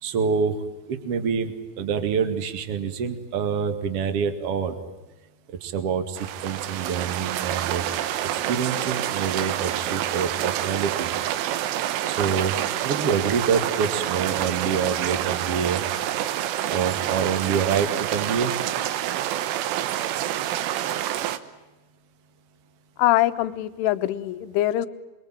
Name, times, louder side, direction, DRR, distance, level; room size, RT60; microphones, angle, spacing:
voice 1, 0.0-4.8 5.6-7.8 8.2-11.1 12.1-12.5 12.8-15.8 16.7-18.5, right 6 dB, 45° right, 8 dB, 2.0 m, -26 dB
sound 1, 6.2-21.4, right 12 dB, 80° right, 3.6 m, -27 dB
voice 2, 23.0-24.9, left 14 dB, 80° left, 12 dB, 3.5 m, -23 dB
28.0 x 23.0 x 9.0 m, 1.1 s
omnidirectional pair, 5.7 m